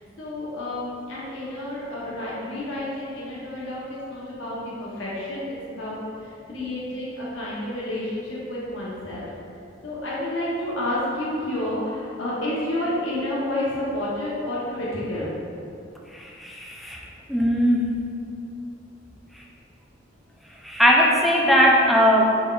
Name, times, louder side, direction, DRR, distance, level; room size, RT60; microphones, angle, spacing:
voice 1, 0.2-6.0 6.5-9.3 9.8-15.3, left 1 dB, 80° left, -7 dB, 0.8 m, -30 dB
voice 2, 16.1-17.0 17.3-17.9 19.3-19.4 20.6-22.2, equal, ahead, -3 dB, 0.4 m, -19 dB
4.3 x 3.7 x 2.3 m, 2.6 s
head